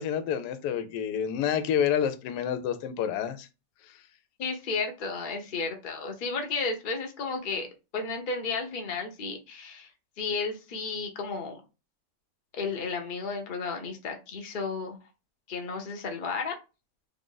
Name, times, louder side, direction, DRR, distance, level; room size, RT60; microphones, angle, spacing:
voice 1, 0.0-3.5, left 8 dB, 75° left, 1.1 m, -28 dB
voice 2, 4.4-7.7 7.9-9.9 10.2-11.6 12.5-15.0 15.5-16.5, left 4 dB, 50° left, 0.6 m, -33 dB
3.5 x 2.5 x 3.8 m
omnidirectional pair, 1.9 m